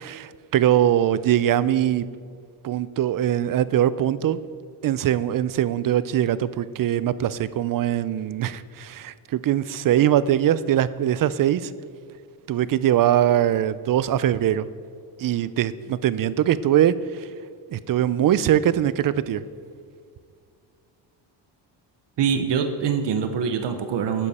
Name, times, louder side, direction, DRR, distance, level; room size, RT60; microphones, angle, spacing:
voice 1, 0.0-2.1 2.6-4.4 4.8-11.7 12.5-14.7 15.2-17.3 17.7-19.4, right 11 dB, 50° right, 17 dB, 0.5 m, -22 dB
voice 2, 22.2-24.3, right 7 dB, 65° right, 7 dB, 0.9 m, -24 dB
12.0 x 9.9 x 4.2 m, 2.1 s
cardioid pair, 125°, 45 cm